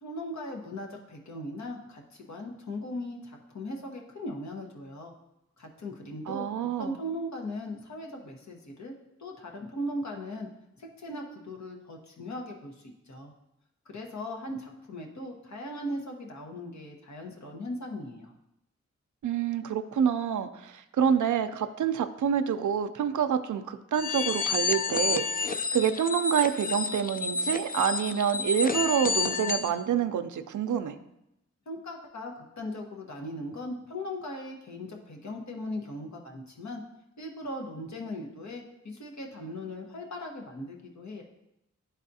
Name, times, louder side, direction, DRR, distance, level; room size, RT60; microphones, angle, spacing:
voice 1, 0.0-5.1 5.6-6.5 6.8-8.9 9.2-10.5 10.8-13.3 13.9-18.3 31.7-36.8 37.2-41.2, left 1 dB, 70° left, 1 dB, 1.2 m, -38 dB
voice 2, 6.3-7.0 19.2-31.0, right 8 dB, 85° right, 9 dB, 0.5 m, -27 dB
sound 1, 23.9-29.7, left 4 dB, 30° left, 0.4 m, -30 dB
11.5 x 4.1 x 2.7 m, 0.85 s
wide cardioid pair, 75°, 29 cm